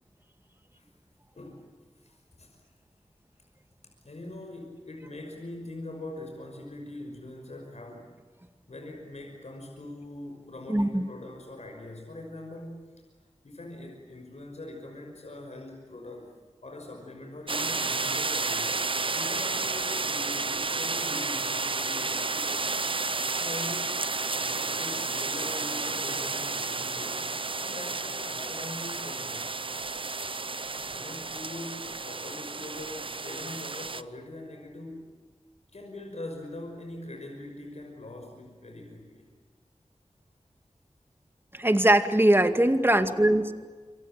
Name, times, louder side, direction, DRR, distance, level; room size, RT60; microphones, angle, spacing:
voice 1, 1.4-1.7 2.0-2.5 4.0-8.1 8.7-12.8 13.4-16.3 16.6-18.7 19.1-22.7 23.4-24.1 24.4-29.6 30.9-35.1 35.7-39.3 42.7-43.3, left 1 dB, 70° left, 1 dB, 5.8 m, -42 dB
voice 2, 10.7-11.0 41.5-43.5, right 1 dB, 20° right, 8 dB, 2.2 m, -21 dB
sound 1, 17.5-34.0, right 3 dB, 45° right, 0.8 m, -31 dB
27.0 x 26.5 x 7.5 m, 1.4 s
wide cardioid pair, 75°, 12 cm